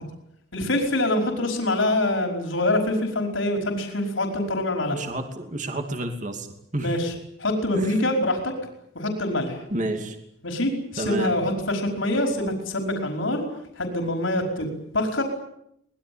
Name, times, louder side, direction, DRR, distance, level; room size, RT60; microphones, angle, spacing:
voice 1, 0.5-5.0 6.8-7.1 7.4-8.5 9.0-9.6 10.4-13.5 13.8-14.7 14.9-15.2, left 1 dB, 85° left, 3 dB, 5.2 m, -25 dB
voice 2, 4.9-6.5 6.7-7.0 7.7-8.0 9.7-10.2 11.0-11.4, right 1 dB, 40° right, 5 dB, 2.7 m, -29 dB
24.5 x 20.5 x 8.8 m, 0.75 s
head